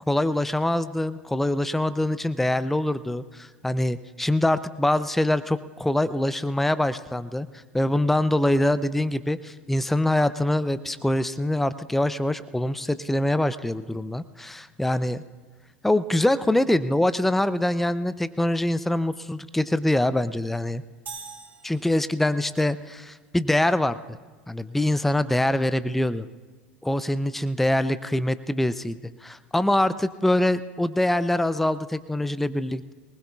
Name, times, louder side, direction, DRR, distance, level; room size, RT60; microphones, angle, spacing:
voice 1, 0.1-7.5 7.7-15.2 15.8-20.8 21.6-24.0 24.5-26.3 26.8-32.9, left 1 dB, 5° left, 14 dB, 0.5 m, -24 dB
sound 1, 21.1-22.4, right 5 dB, 35° right, 4.4 m, -42 dB
23.5 x 19.5 x 2.4 m, 1.3 s
figure-of-eight pair, 80°, 6 cm